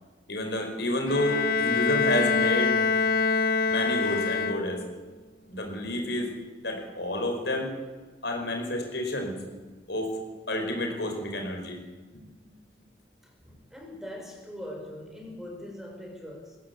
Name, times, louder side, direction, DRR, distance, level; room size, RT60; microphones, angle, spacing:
voice 1, 0.3-2.7 3.7-4.8 5.5-6.3 6.6-7.7 8.2-9.3 9.9-10.1 10.5-11.8 12.1-12.2, left 1 dB, 70° left, 3 dB, 4.9 m, -29 dB
Bowed string instrument, 1.1-5.0, left 5 dB, 55° left, 0.9 m, -25 dB
voice 2, 13.2-16.6, left 1 dB, ahead, 0 dB, 5.0 m, -42 dB
21.5 x 15.5 x 8.3 m, 1.4 s
head